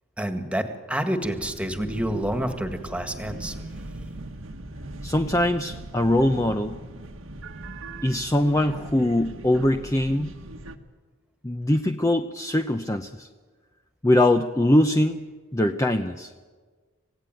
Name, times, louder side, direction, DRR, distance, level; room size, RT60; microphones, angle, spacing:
voice 1, 0.2-3.6, right 1 dB, 5° right, 6 dB, 1.8 m, -28 dB
sound 1, 1.2-10.8, right 1 dB, 80° right, 1.6 m, -39 dB
voice 2, 5.0-6.8 8.0-10.3 11.4-13.3 14.0-15.2 15.5-16.3, left 1 dB, 15° left, 6 dB, 0.7 m, -22 dB
27.5 x 16.5 x 9.2 m, 1.4 s
head